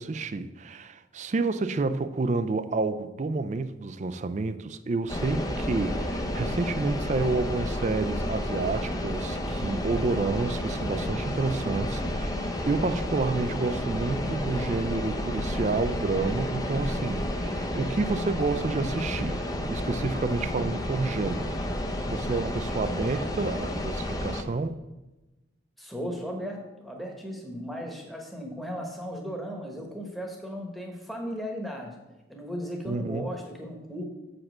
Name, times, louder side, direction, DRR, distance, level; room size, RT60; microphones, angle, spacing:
voice 1, 0.0-21.6 22.1-24.8 32.9-33.3, right 3 dB, 35° right, 0.4 m, -29 dB
sound 1, 5.1-24.4, left 1 dB, 20° left, 0.6 m, -31 dB
voice 2, 25.8-32.0 32.3-34.0, equal, ahead, 1.1 m, -36 dB
7.3 x 5.1 x 6.0 m
head